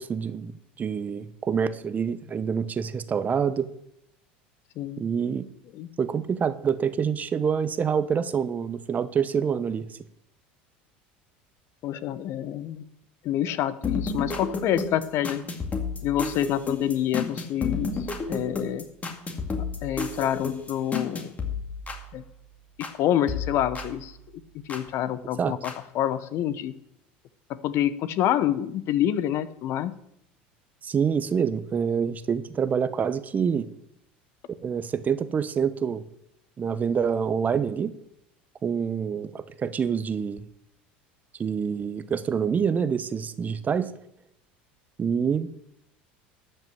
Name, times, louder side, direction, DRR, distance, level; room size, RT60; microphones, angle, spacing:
voice 1, 0.0-3.7 5.0-5.5 6.0-9.9 25.4-25.5 30.8-33.7 34.6-36.0 36.6-37.9 38.6-40.4 41.4-43.9 45.0-45.5, right 7 dB, 30° right, 14 dB, 0.8 m, -26 dB
voice 2, 11.8-12.8 13.2-15.4 16.0-18.0 18.3-18.8 19.8-21.3 22.1-22.2 23.0-24.1 24.7-26.7 27.6-29.9, left 11 dB, 55° left, 15 dB, 0.8 m, -27 dB
sound 1, 13.8-23.0 23.3-24.9 25.6-25.7, left 4 dB, 25° left, 2.2 m, -33 dB
12.5 x 5.6 x 7.8 m, 0.75 s
hypercardioid pair, 85°, 5 cm